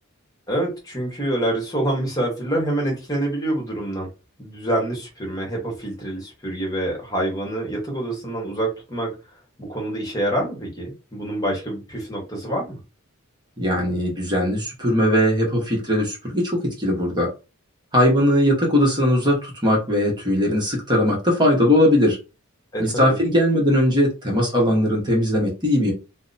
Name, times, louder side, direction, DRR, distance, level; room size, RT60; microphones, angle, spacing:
voice 1, 0.5-4.1 4.4-9.1 9.6-12.8 22.7-23.2, right 1 dB, 15° left, -1 dB, 1.2 m, -26 dB
voice 2, 13.6-17.3 17.9-22.2 22.8-25.9, equal, 20° right, -2 dB, 1.0 m, -19 dB
2.8 x 2.1 x 3.9 m, 0.29 s
head